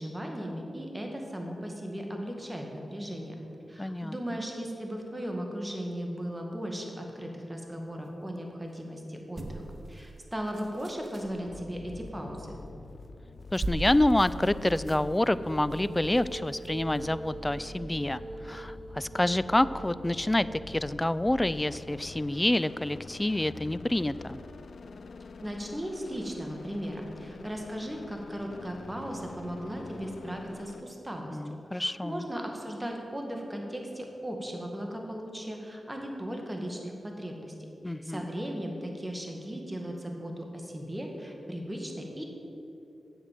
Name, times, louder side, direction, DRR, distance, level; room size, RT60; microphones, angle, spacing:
voice 1, 0.0-3.4 3.7-9.6 9.9-12.6 25.4-37.5 37.9-42.2, equal, 15° right, 1 dB, 1.8 m, -37 dB
voice 2, 3.8-4.2 13.5-24.4 31.3-32.3 37.8-38.3, left 1 dB, 15° left, 16 dB, 0.3 m, -28 dB
sound 1, 9.3-11.4 12.9-13.1 13.4-17.0 17.6-17.7, right 1 dB, 45° right, 1.1 m, -40 dB
sound 2, 11.5-30.8, left 3 dB, 75° left, 0.5 m, -46 dB
sound 3, 14.8-22.2, right 3 dB, 65° right, 0.6 m, -45 dB
8.3 x 7.8 x 7.6 m, 2.9 s
cardioid pair, 55°, 0 cm